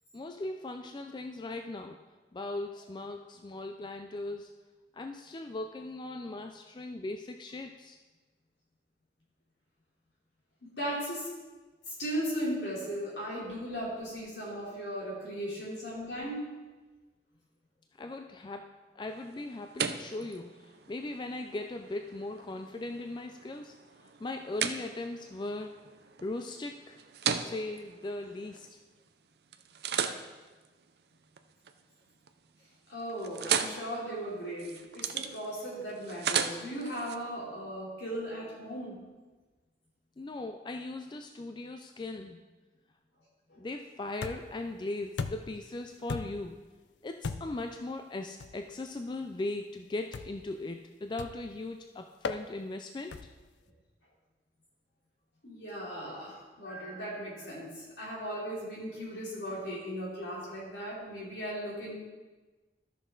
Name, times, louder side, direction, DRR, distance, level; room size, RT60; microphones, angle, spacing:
voice 1, 0.1-2.0 2.3-4.5 4.9-8.0 18.0-18.7 19.0-23.7 24.0-25.7 26.2-27.0 27.2-28.8 40.2-42.4 43.6-46.6 47.0-53.2, left 2 dB, 25° left, 5 dB, 0.3 m, -39 dB
voice 2, 10.6-11.3 11.9-16.6 32.9-39.0 43.5-43.6 55.4-62.0, equal, 75° left, -6 dB, 3.5 m, -37 dB
sound 1, 19.1-29.1 29.5-31.8 32.2-32.6 32.9-37.2, right 7 dB, 65° right, 0.5 m, -37 dB
sound 2, 44.2-44.6 45.2-45.6 46.1-46.5 47.2-47.7 48.4-48.6 50.1-50.5 51.2-51.5 52.2-52.4 53.1-53.5, left 4 dB, 90° left, 0.5 m, -37 dB
13.0 x 6.1 x 3.9 m, 1.3 s
head